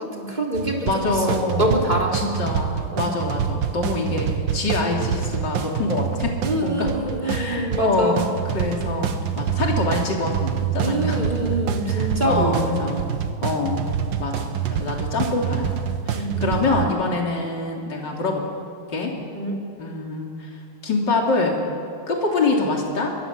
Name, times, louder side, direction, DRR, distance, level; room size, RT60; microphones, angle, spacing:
voice 1, 0.1-2.1 2.9-3.2 6.4-8.2 10.8-12.8 16.1-17.0 19.3-19.6, right 1 dB, 20° right, -1 dB, 3.6 m, -25 dB
sound 1, 0.5-16.9, right 8 dB, 65° right, 1.7 m, -26 dB
voice 2, 0.8-1.9 2.1-6.3 6.6-6.9 7.2-11.2 11.9-13.0 13.4-13.9 14.2-15.7 16.1-18.4 18.9-19.1 19.8-20.5 20.8-21.6 22.1-23.1, left 3 dB, 55° left, 0 dB, 3.6 m, -25 dB
23.5 x 22.5 x 7.5 m, 2.4 s
omnidirectional pair, 2.3 m